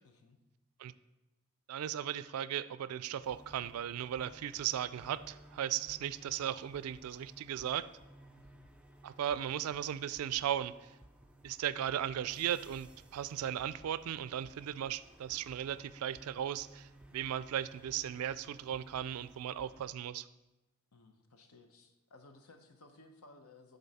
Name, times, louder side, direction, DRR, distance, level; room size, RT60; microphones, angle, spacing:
voice 1, 0.0-0.4 8.4-8.7 20.9-23.8, left 2 dB, 80° left, 6 dB, 0.8 m, -59 dB
voice 2, 1.7-7.9 9.0-10.7 11.4-20.3, right 10 dB, 80° right, 17 dB, 0.3 m, -37 dB
sound 1, 3.2-19.9, right 1 dB, 5° right, 0.4 m, -58 dB
10.5 x 3.9 x 4.1 m, 1.0 s
head